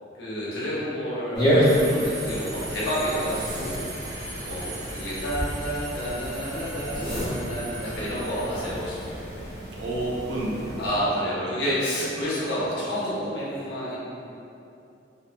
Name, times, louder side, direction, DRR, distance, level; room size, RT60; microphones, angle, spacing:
voice 1, 0.2-3.8 4.4-9.0 10.8-14.0, equal, 60° left, -8 dB, 0.7 m, -29 dB
sound 1, 1.3-10.9, equal, 25° left, 0.6 m, -29 dB
Subway metro underground, 1.6-11.1, right 1 dB, 20° right, 0.4 m, -36 dB
voice 2, 9.7-11.1 11.4-11.6 12.0-12.1, right 1 dB, 80° right, -3 dB, 0.5 m, -31 dB
2.5 x 2.4 x 2.5 m, 2.7 s
head